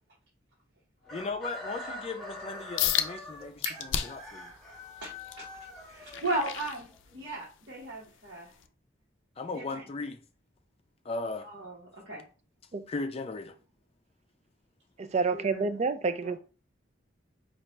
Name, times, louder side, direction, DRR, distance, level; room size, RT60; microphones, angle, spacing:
Chicken rooster, 1.0-7.0, left 1 dB, ahead, 1.6 m, -44 dB
voice 1, 1.1-4.5 9.4-10.2 11.0-11.5 12.9-13.6, left 3 dB, 30° left, 0.5 m, -37 dB
sound 1, 2.8-3.1 3.6-4.3 4.8-7.4 7.9-8.1 8.6-8.7, left 10 dB, 85° left, 0.4 m, -32 dB
voice 2, 5.0-5.4 5.9-8.5 9.5-9.8 11.4-12.2 15.3-15.7 16.2-16.3, right 2 dB, 60° right, 1.2 m, -36 dB
voice 3, 15.0-16.4, right 4 dB, 35° right, 0.4 m, -28 dB
4.4 x 2.5 x 3.2 m
head